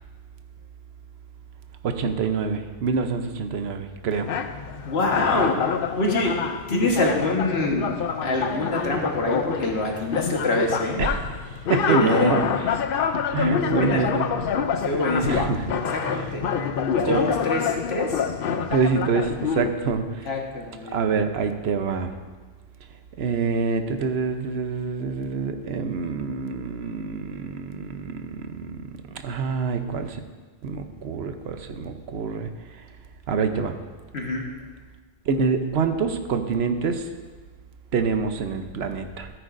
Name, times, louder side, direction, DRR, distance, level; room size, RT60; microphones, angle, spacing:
voice 1, 1.8-4.3 11.0-11.3 11.7-12.4 13.3-14.3 15.2-15.8 16.1-16.3 17.0-17.2 18.7-20.3 20.9-22.1 23.2-28.8 29.1-30.2 30.6-32.5 33.3-33.7 35.3-37.1 37.9-39.3, right 5 dB, 85° right, 7 dB, 1.0 m, -26 dB
sound 1, 4.1-19.7, left 7 dB, 65° left, 0.7 m, -27 dB
voice 2, 4.8-5.6 6.0-6.3 6.7-7.9 8.2-11.0 11.9-12.4 13.4-14.1 14.8-15.5 15.9-16.4 16.9-18.2 20.3-21.0 34.1-34.4, left 2 dB, 85° left, 0 dB, 1.6 m, -25 dB
14.5 x 9.1 x 2.6 m, 1.4 s
omnidirectional pair, 1.0 m